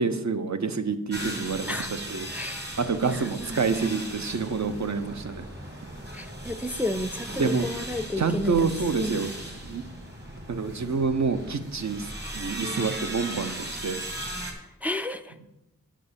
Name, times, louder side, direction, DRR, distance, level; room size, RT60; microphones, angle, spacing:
voice 1, 0.0-2.3 2.8-5.5 7.4-7.7 8.2-9.3 9.6-9.8 10.5-14.0, right 4 dB, 55° right, 9 dB, 0.7 m, -27 dB
sound 1, 1.1-14.5, right 1 dB, 30° right, 1.6 m, -37 dB
voice 2, 2.3-2.7 3.0-3.8 6.1-9.2 14.8-15.3, left 1 dB, 5° right, 8 dB, 0.4 m, -32 dB
7.7 x 4.3 x 6.8 m, 0.92 s
wide cardioid pair, 65°, 34 cm